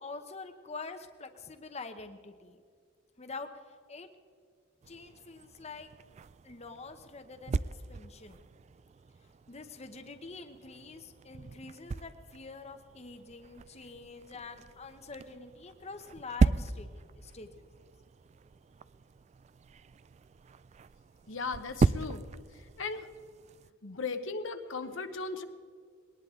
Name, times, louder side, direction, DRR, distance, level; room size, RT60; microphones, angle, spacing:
voice 1, 0.0-2.6 3.2-3.5 3.9-4.1 4.9-5.9 6.4-7.6 7.9-8.4 9.5-16.9 17.1-17.7, left 4 dB, 30° left, 7 dB, 0.9 m, -45 dB
sound 1, 4.8-23.7, right 4 dB, 35° right, 0.3 m, -37 dB
voice 2, 21.3-22.2 22.5-23.1 23.8-25.4, left 4 dB, 65° left, 8 dB, 1.0 m, -37 dB
21.0 x 18.5 x 3.7 m, 2.1 s
head